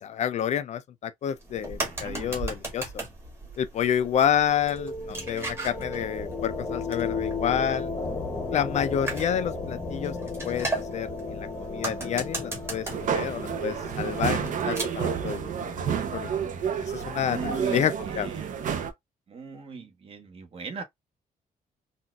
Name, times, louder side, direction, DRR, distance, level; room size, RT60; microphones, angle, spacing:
voice 1, 0.0-3.1 3.6-7.9 8.5-10.2 10.4-15.5 15.8-16.3 16.8-18.3, left 9 dB, 50° left, 0.4 m, -29 dB
sound 1, 1.3-15.2, right 2 dB, 15° right, 1.3 m, -38 dB
voice 2, 1.6-2.4 17.3-18.5 19.3-20.8, right 4 dB, 40° right, 1.0 m, -39 dB
sound 2, 4.0-14.5, left 3 dB, 20° left, 0.8 m, -35 dB
sound 3, 12.9-18.9, right 7 dB, 60° right, 0.6 m, -30 dB
4.0 x 2.4 x 2.3 m
wide cardioid pair, 170°, 15 cm